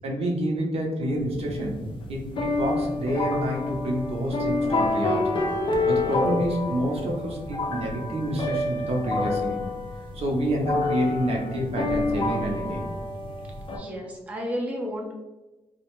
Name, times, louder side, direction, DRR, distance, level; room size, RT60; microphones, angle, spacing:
voice 1, 0.0-1.8 2.1-5.4 5.9-9.6 10.1-12.9, equal, 65° right, -1 dB, 0.6 m, -28 dB
sound 1, 1.2-13.8, left 2 dB, 50° left, 0.4 m, -28 dB
voice 2, 1.2-1.5 13.7-15.1, equal, 15° right, -2 dB, 0.5 m, -33 dB
2.3 x 2.1 x 3.0 m, 1.1 s
wide cardioid pair, 130°, 11 cm